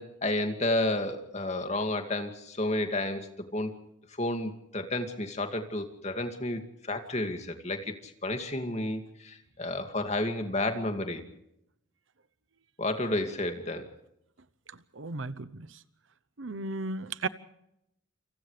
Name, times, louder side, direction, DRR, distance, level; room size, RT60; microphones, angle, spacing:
voice 1, 0.0-3.3 3.5-3.7 4.2-6.6 6.9-11.2 12.8-13.9, left 1 dB, 30° left, 2.3 m, -31 dB
voice 2, 15.0-15.7 16.4-17.3, right 3 dB, 65° right, 0.9 m, -34 dB
29.0 x 27.5 x 3.4 m
head